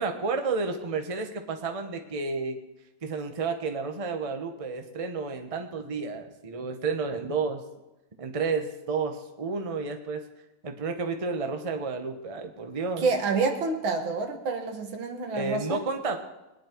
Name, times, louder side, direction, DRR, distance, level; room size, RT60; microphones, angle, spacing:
voice 1, 0.0-2.6 3.0-7.6 8.2-10.2 10.6-13.1 15.3-16.2, right 4 dB, 20° right, 5 dB, 0.9 m, -31 dB
voice 2, 13.0-15.8, right 4 dB, 80° right, 4 dB, 2.3 m, -28 dB
21.5 x 10.5 x 4.6 m, 1.0 s
omnidirectional pair, 2.2 m